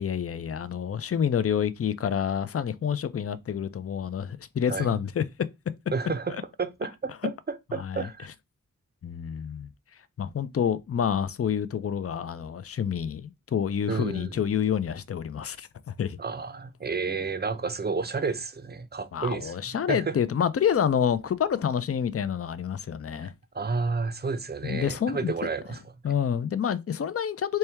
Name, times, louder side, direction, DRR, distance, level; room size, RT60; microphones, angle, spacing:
voice 1, 0.0-5.2 6.3-6.4 7.7-8.1 9.0-9.7 10.2-16.2 19.1-23.3 24.6-25.3 26.0-27.6, left 8 dB, 45° left, 0.4 m, -28 dB
voice 2, 4.7-5.0 5.9-8.3 13.9-14.3 16.2-19.5 19.9-20.1 23.2-23.3 23.5-25.8, right 4 dB, 30° right, 0.5 m, -31 dB
4.3 x 2.2 x 3.3 m
wide cardioid pair, 45°, 34 cm